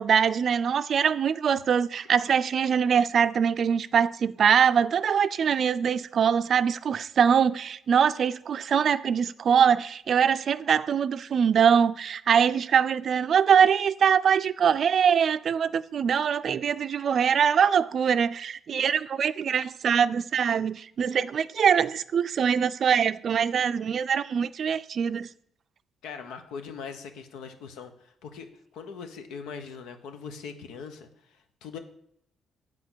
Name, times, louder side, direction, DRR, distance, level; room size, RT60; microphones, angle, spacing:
voice 1, 0.0-25.3, right 7 dB, 55° right, 0.4 m, -23 dB
voice 2, 26.0-28.5 28.7-31.8, left 6 dB, 90° left, 0.9 m, -41 dB
8.0 x 4.5 x 6.1 m
cardioid pair, 90°, 0 cm